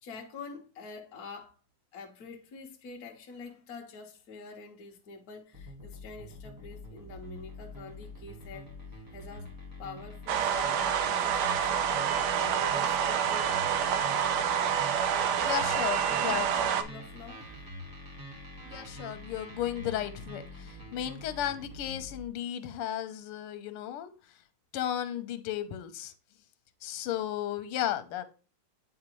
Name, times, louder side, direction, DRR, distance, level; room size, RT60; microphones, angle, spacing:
voice 1, 0.0-1.5 1.9-9.5 9.8-11.8 12.3-13.5 15.7-17.5, left 4 dB, 55° left, 1.2 m, -46 dB
sound 1, 5.5-22.3, left 1 dB, 15° right, 1.0 m, -45 dB
sound 2, 10.3-16.8, right 8 dB, 75° right, 0.9 m, -27 dB
voice 2, 15.4-16.5 18.6-24.1 24.7-26.1 26.8-28.2, left 11 dB, 85° left, 1.6 m, -34 dB
8.6 x 4.0 x 3.0 m
omnidirectional pair, 2.4 m